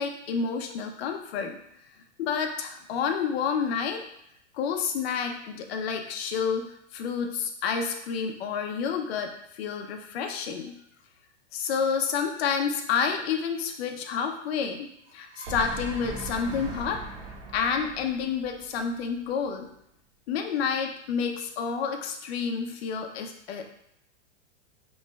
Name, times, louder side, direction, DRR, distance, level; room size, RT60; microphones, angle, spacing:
voice 1, 0.0-1.6 2.2-4.0 4.5-10.7 11.5-14.9 15.1-17.0 17.5-19.7 20.3-23.7, left 6 dB, 60° left, 4 dB, 0.6 m, -29 dB
sound 1, 15.1-19.3, right 3 dB, 40° right, 0.9 m, -39 dB
4.2 x 3.1 x 2.2 m, 0.77 s
hypercardioid pair, 145°, 35 cm